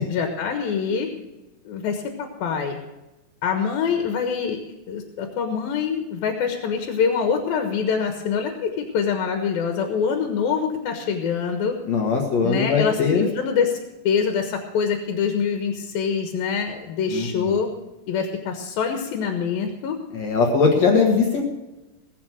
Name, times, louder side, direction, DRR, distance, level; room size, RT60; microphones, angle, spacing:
voice 1, 0.1-1.1 1.7-2.8 3.4-4.6 4.9-11.8 12.4-13.7 14.0-17.7 18.1-20.0, left 6 dB, 85° left, 5 dB, 3.2 m, -25 dB
voice 2, 11.9-13.3 17.1-17.6 20.1-21.4, left 5 dB, 55° left, 2 dB, 2.7 m, -20 dB
21.0 x 7.5 x 6.3 m, 1.0 s
omnidirectional pair, 4.1 m